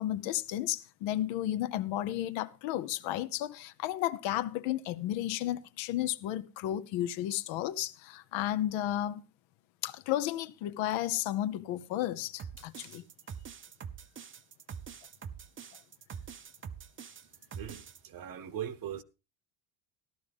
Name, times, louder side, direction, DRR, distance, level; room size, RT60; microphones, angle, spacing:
voice 1, 0.0-9.2 9.8-13.0, left 13 dB, 85° left, 0.8 m, -33 dB
sound 1, 12.4-18.0, right 7 dB, 30° right, 0.6 m, -45 dB
voice 2, 17.5-19.0, right 10 dB, 50° right, 1.0 m, -40 dB
14.0 x 12.0 x 3.5 m
cardioid pair, 100°, 45 cm